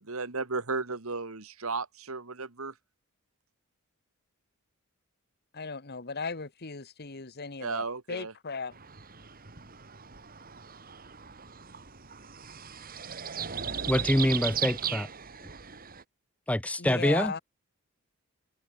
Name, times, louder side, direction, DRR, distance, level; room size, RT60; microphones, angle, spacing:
voice 1, 0.0-2.8 7.6-8.3, right 4 dB, 70° right, 1.8 m, -34 dB
voice 2, 5.5-8.7 16.8-17.4, left 4 dB, 45° left, 1.5 m, -37 dB
sound 1, 8.7-16.0, right 8 dB, 40° right, 2.7 m, -37 dB
voice 3, 13.9-15.1 16.5-17.3, left 1 dB, 5° left, 0.6 m, -25 dB
head